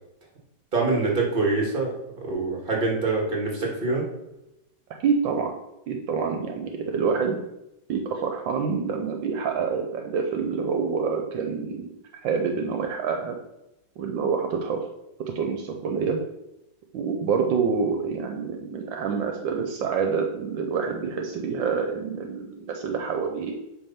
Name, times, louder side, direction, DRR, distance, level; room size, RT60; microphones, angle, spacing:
voice 1, 0.7-1.9 2.2-4.1, right 3 dB, 30° right, -1 dB, 1.9 m, -25 dB
voice 2, 5.0-5.5 5.9-7.4 7.9-13.4 14.0-14.8 15.3-16.2 16.9-23.5, right 5 dB, 75° right, 4 dB, 1.4 m, -27 dB
8.3 x 3.3 x 5.6 m, 0.89 s
omnidirectional pair, 2.1 m